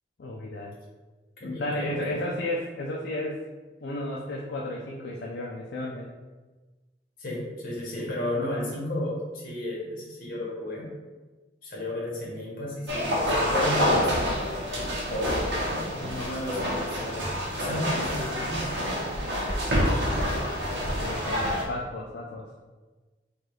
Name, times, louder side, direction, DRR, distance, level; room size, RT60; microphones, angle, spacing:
voice 1, 0.2-0.8 1.4-3.4 3.8-6.1 15.9-16.6 20.9-22.5, left 1 dB, 70° left, -2 dB, 0.4 m, -33 dB
voice 2, 1.4-2.2 7.2-10.9 11.6-17.2 17.6-19.1, left 1 dB, 55° left, -4 dB, 1.3 m, -33 dB
sound 1, 12.9-21.6, equal, 80° right, 0.9 m, -27 dB
4.5 x 2.3 x 3.1 m, 1.3 s
head